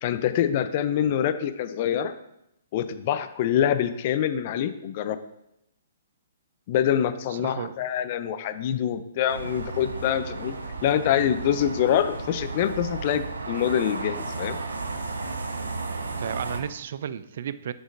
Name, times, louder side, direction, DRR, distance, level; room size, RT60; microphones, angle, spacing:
voice 1, 0.0-2.1 2.7-5.2 6.7-10.5 10.8-14.6, left 10 dB, 45° left, 11 dB, 0.5 m, -25 dB
voice 2, 7.3-7.7 16.2-17.7, right 9 dB, 60° right, 15 dB, 0.4 m, -33 dB
sound 1, 9.3-16.6, right 3 dB, 90° right, 0.8 m, -34 dB
8.0 x 6.2 x 2.6 m, 0.83 s
hypercardioid pair, 130°, 0 cm